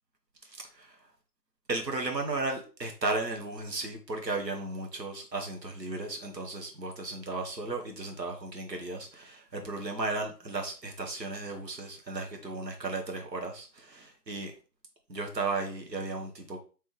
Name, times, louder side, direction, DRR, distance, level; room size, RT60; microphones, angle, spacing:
voice 1, 1.7-14.5 15.1-16.6, right 3 dB, 85° right, 1.3 m, -35 dB
3.5 x 3.1 x 3.2 m
figure-of-eight pair, 155°, 49 cm